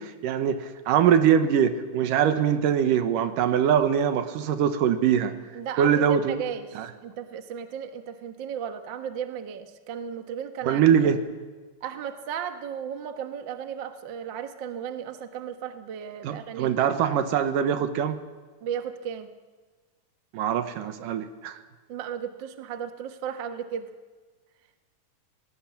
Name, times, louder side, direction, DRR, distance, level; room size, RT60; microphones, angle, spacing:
voice 1, 0.0-5.3 5.8-6.4 6.8-6.9 10.7-11.2 16.2-18.2 20.3-21.6, right 8 dB, 80° right, 9 dB, 2.7 m, -23 dB
voice 2, 5.5-10.8 11.8-16.7 18.6-19.3 21.9-23.9, right 8 dB, 55° right, 7 dB, 1.3 m, -35 dB
23.5 x 19.0 x 7.3 m, 1.4 s
omnidirectional pair, 3.9 m